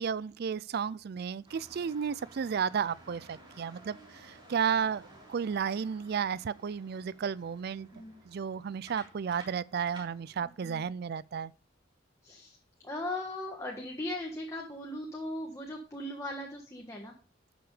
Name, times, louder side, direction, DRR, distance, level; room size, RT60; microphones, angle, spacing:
voice 1, 0.0-7.9 8.2-11.5, right 7 dB, 55° right, 0.4 m, -33 dB
sound 1, 1.4-10.5, right 1 dB, 25° right, 3.6 m, -55 dB
voice 2, 10.4-10.8 12.2-12.6 12.8-17.1, left 1 dB, 15° left, 1.5 m, -38 dB
12.0 x 6.2 x 4.9 m
head